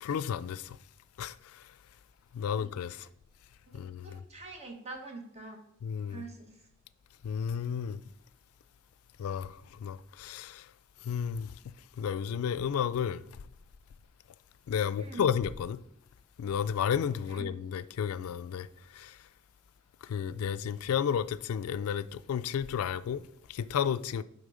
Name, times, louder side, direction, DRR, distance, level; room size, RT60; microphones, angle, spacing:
voice 1, 0.0-0.8 1.2-1.6 2.3-3.1 3.7-4.2 5.8-6.2 7.2-8.0 9.2-10.7 11.0-11.6 12.0-13.2 14.7-15.8 16.4-18.7 18.9-19.2 20.0-23.2 23.5-24.2, left 8 dB, 80° left, 0.3 m, -32 dB
voice 2, 3.7-5.6 6.1-6.6 15.0-15.3 17.3-17.5, right 3 dB, 30° right, 1.3 m, -45 dB
9.1 x 3.6 x 5.0 m
head